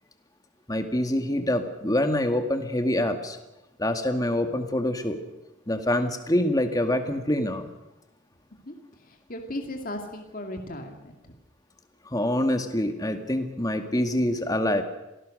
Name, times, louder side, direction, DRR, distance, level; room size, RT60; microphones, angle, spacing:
voice 1, 0.7-3.4 3.8-5.2 5.7-7.7 12.1-14.8, left 1 dB, 20° left, 6 dB, 2.1 m, -25 dB
voice 2, 9.0-11.4, left 1 dB, 45° left, 3 dB, 2.4 m, -36 dB
27.5 x 18.0 x 6.5 m, 0.97 s
head